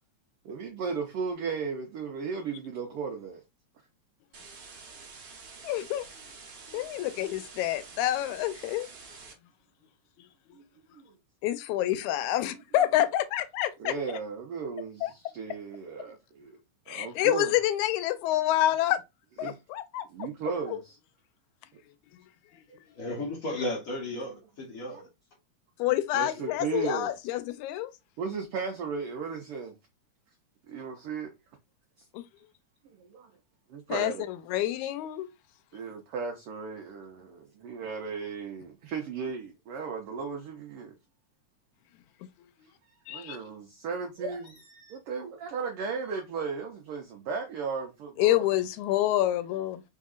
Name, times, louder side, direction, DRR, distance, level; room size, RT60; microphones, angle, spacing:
voice 1, 0.4-3.4 10.5-10.6 10.9-11.0 13.8-16.6 16.9-17.5 19.4-19.6 20.1-21.0 24.9-25.0 26.1-27.2 28.2-29.7 30.7-31.3 33.0-33.3 33.7-34.3 35.7-41.0 43.1-48.4, right 5 dB, 80° right, 1.2 m, -35 dB
sound 1, 4.3-9.3, right 5 dB, 60° right, 1.2 m, -48 dB
voice 2, 5.6-6.1 6.7-8.9 11.4-13.9 15.0-15.1 16.9-19.0 19.4-20.0 20.7-20.8 25.8-27.9 32.1-32.2 33.9-35.3 43.1-43.4 48.2-49.8, left 13 dB, 85° left, 1.9 m, -27 dB
voice 3, 22.9-25.1, left 1 dB, 65° left, 0.8 m, -34 dB
4.4 x 3.7 x 2.4 m
omnidirectional pair, 3.4 m